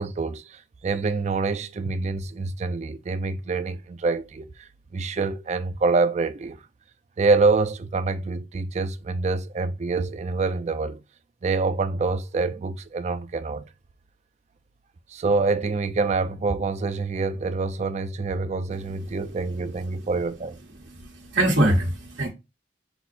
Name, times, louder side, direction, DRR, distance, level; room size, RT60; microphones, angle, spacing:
voice 1, 0.0-6.6 7.2-11.0 11.4-13.6 15.1-20.6, right 3 dB, 35° right, 0.3 m, -26 dB
voice 2, 20.9-22.3, right 1 dB, 60° right, 1.1 m, -23 dB
5.7 x 2.0 x 4.2 m
head